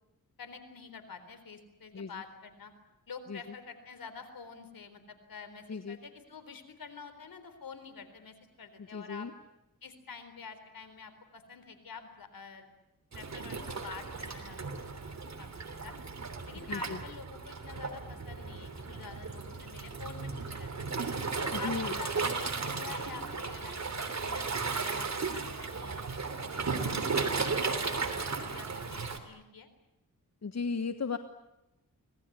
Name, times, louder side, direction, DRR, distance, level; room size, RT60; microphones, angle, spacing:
voice 1, 0.4-2.7 3.1-9.3 9.8-12.7 13.1-14.7 15.4-15.9 16.5-20.7 21.3-26.1 26.5-27.8 28.4-29.7, left 5 dB, 75° left, 9 dB, 4.1 m, -48 dB
voice 2, 8.9-9.3 16.7-17.0 21.5-21.9 30.4-31.2, left 5 dB, 50° left, 9 dB, 1.4 m, -35 dB
Waves surf, 13.1-29.2, right 4 dB, 50° right, 3.3 m, -35 dB
25.5 x 19.0 x 10.0 m, 0.91 s
cardioid pair, 75°, 35 cm